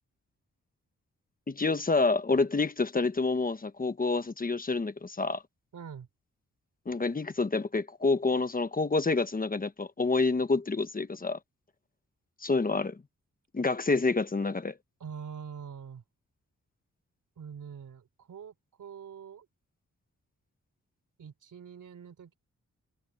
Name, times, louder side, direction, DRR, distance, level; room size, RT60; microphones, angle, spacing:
voice 1, 1.5-5.4 6.9-11.4 12.4-13.0 13.5-14.7, left 3 dB, 30° left, 1.2 m, -28 dB
voice 2, 5.7-6.1 15.0-16.0 17.4-19.5 21.2-22.4, right 7 dB, 85° right, 3.4 m, -44 dB
wide cardioid pair, 105°, 30 cm